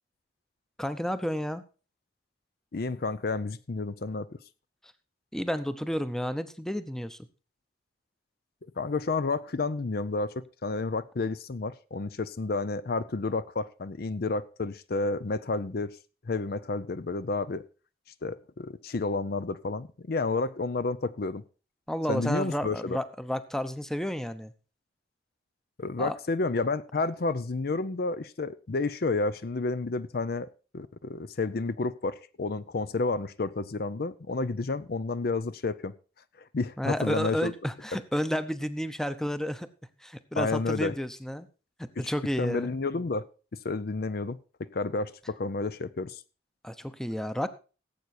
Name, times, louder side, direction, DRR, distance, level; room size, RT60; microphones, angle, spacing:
voice 1, 0.8-1.6 5.3-7.2 21.9-24.5 26.0-26.2 36.8-39.7 40.0-41.5 41.8-42.7 46.6-47.5, equal, 5° left, 11 dB, 0.7 m, -31 dB
voice 2, 2.7-4.3 8.8-16.0 16.3-17.6 18.2-21.4 22.1-23.0 25.8-30.5 30.7-35.9 36.5-37.5 40.3-40.9 42.4-43.2 43.6-46.2, left 3 dB, 55° left, 15 dB, 0.6 m, -30 dB
17.0 x 8.2 x 4.3 m, 0.35 s
head